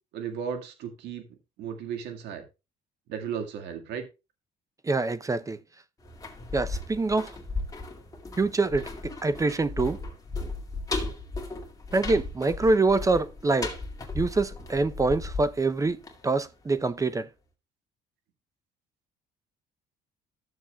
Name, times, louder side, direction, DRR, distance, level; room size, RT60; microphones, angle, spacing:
voice 1, 0.1-1.2 1.6-2.5 3.1-4.1, right 7 dB, 80° right, 1.9 m, -35 dB
voice 2, 4.8-5.6 6.5-7.3 8.4-10.0 11.9-13.7 14.1-17.3, right 3 dB, 20° right, 0.6 m, -25 dB
sound 1, 6.0-16.8 17.1-17.2, left 3 dB, 20° left, 2.2 m, -36 dB
14.0 x 7.2 x 2.3 m
cardioid pair, 110°, 17 cm